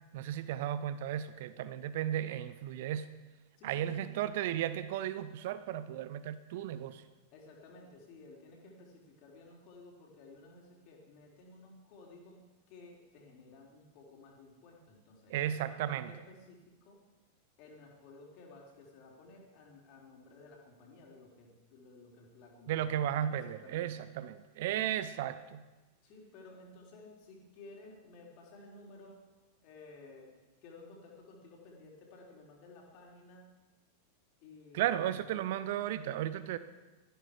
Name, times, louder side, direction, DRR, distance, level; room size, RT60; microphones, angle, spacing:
voice 1, 0.1-3.1 3.6-7.0 15.3-16.1 22.7-25.7 34.7-36.6, right 11 dB, 50° right, 14 dB, 0.7 m, -34 dB
voice 2, 3.6-4.1 7.3-12.4 12.7-17.0 17.6-24.0 24.6-25.0 26.0-29.2 29.6-33.5 34.4-35.2, left 3 dB, 45° left, -1 dB, 3.9 m, -55 dB
18.5 x 14.0 x 5.0 m, 1.2 s
figure-of-eight pair, 90°, 0 cm